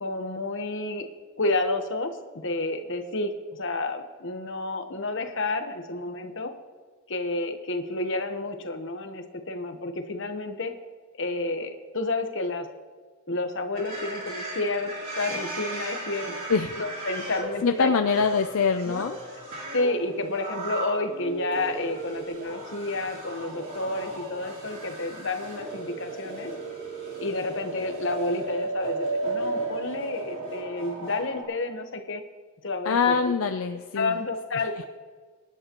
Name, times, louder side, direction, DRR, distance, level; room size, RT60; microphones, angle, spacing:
voice 1, 0.0-1.1 1.4-2.1 2.3-6.5 7.1-10.7 11.2-12.7 13.3-14.9 15.2-16.3 16.7-17.9 18.9-19.0 19.7-26.5 27.2-32.2 32.6-33.3 34.0-34.9, left 2 dB, 55° left, 6 dB, 1.1 m, -30 dB
sound 1, 13.8-31.4, right 2 dB, 40° right, 3.4 m, -35 dB
voice 2, 17.6-19.2 32.9-34.2, left 5 dB, 75° left, 7 dB, 0.5 m, -24 dB
24.0 x 11.0 x 3.0 m, 1.5 s
head